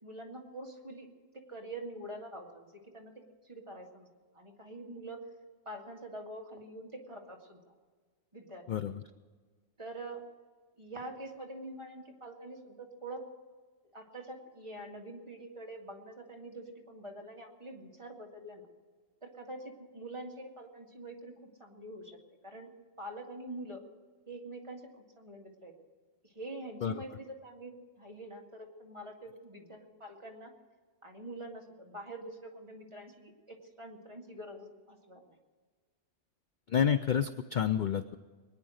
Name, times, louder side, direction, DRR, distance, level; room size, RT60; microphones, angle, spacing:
voice 1, 0.0-1.1 1.5-3.1 3.4-4.1 4.3-5.2 5.7-7.7 8.3-8.6 9.8-10.2 10.8-13.2 13.9-18.7 19.2-22.2 22.4-22.7 23.0-23.8 24.3-25.7 26.2-30.5 31.0-35.4, right 1 dB, 25° right, 0 dB, 2.1 m, -45 dB
voice 2, 8.7-9.0 26.8-26.9 36.7-38.2, left 8 dB, 55° left, 12 dB, 0.5 m, -29 dB
22.0 x 9.9 x 6.4 m, 1.5 s
omnidirectional pair, 1.2 m